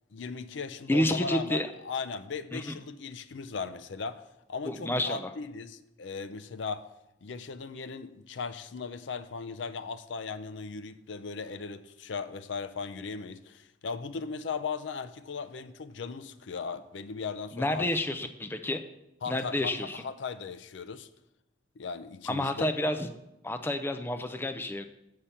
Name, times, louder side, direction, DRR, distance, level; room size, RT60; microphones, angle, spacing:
voice 1, 0.1-4.2 4.5-6.9 7.2-17.9 19.2-21.1 21.8-22.7, left 5 dB, 70° left, 0.5 m, -37 dB
voice 2, 0.9-1.7 2.5-2.8 4.7-5.3 17.5-18.8 19.3-20.0 22.3-23.1 23.4-24.9, left 1 dB, 10° left, 0.4 m, -29 dB
7.2 x 6.7 x 5.6 m
head